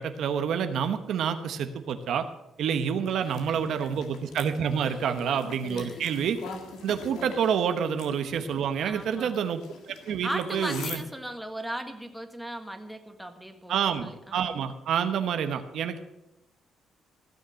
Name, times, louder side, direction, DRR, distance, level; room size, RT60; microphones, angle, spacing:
voice 1, 0.0-2.3 2.6-6.4 6.8-11.0 13.7-16.0, right 7 dB, 75° right, 8 dB, 1.0 m, -28 dB
sound 1, 3.1-11.0, left 5 dB, 85° left, 1.9 m, -44 dB
voice 2, 3.2-3.6 3.8-3.9 4.8-5.3 5.8-6.0 8.8-9.3 10.2-14.5, right 1 dB, ahead, 5 dB, 1.6 m, -38 dB
16.0 x 6.5 x 7.7 m, 0.92 s
cardioid pair, 90°, 0 cm